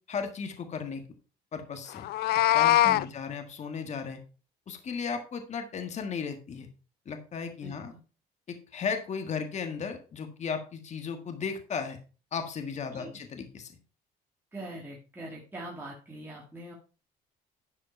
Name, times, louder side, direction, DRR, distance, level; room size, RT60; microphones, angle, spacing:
voice 1, 0.1-1.0 1.5-2.1 2.5-4.2 4.7-6.7 7.0-7.9 8.5-12.0 12.3-13.7, left 6 dB, 45° left, 6 dB, 1.7 m, -35 dB
Meow, 2.0-3.0, left 15 dB, 70° left, 0.4 m, -22 dB
voice 2, 7.6-8.0 12.9-13.2 14.5-16.7, right 1 dB, 10° right, -2 dB, 2.0 m, -42 dB
11.0 x 5.0 x 4.5 m, 0.35 s
cardioid pair, 110°, 17 cm